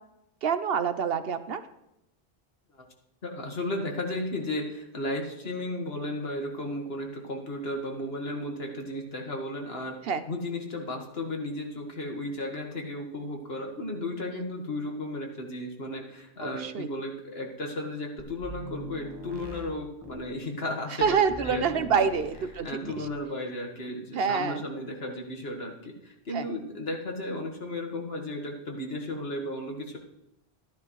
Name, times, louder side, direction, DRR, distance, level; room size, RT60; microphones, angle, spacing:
voice 1, 0.4-1.6 10.1-10.2 16.4-16.9 21.0-22.9 24.1-24.6 26.3-26.5, right 6 dB, 65° right, 11 dB, 0.9 m, -27 dB
voice 2, 3.2-10.0 10.3-22.0 22.6-30.0, left 1 dB, 65° left, 2 dB, 2.0 m, -34 dB
sound 1, 18.2-20.3 21.0-22.6 22.8-23.2, left 1 dB, 25° right, 1.2 m, -44 dB
13.5 x 11.5 x 3.2 m, 0.85 s
omnidirectional pair, 1.1 m